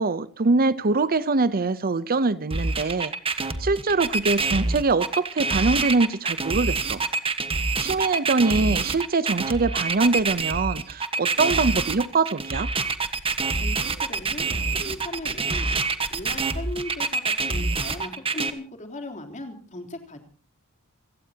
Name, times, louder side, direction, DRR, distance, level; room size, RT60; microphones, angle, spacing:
voice 1, 0.0-7.0 7.8-12.7, right 3 dB, 40° right, 0.7 m, -23 dB
sound 1, 2.5-18.5, right 4 dB, 25° right, 1.4 m, -26 dB
voice 2, 13.6-20.2, left 1 dB, 35° left, 3.6 m, -37 dB
28.5 x 17.0 x 2.9 m
head